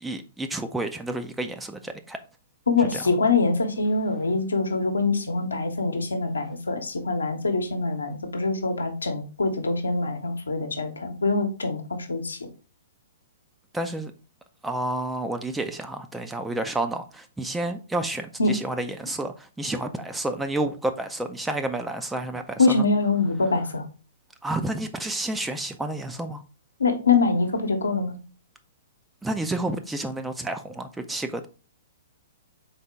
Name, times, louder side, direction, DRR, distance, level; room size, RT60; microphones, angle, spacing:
voice 1, 0.0-2.2 2.9-3.0 13.7-14.1 14.6-22.8 24.4-26.4 29.2-31.5, right 2 dB, 5° right, 0.4 m, -30 dB
voice 2, 2.7-12.4 18.4-18.6 22.6-23.8 26.8-28.1, left 3 dB, 80° left, 0.9 m, -24 dB
4.0 x 3.6 x 3.4 m
figure-of-eight pair, 115°, 0 cm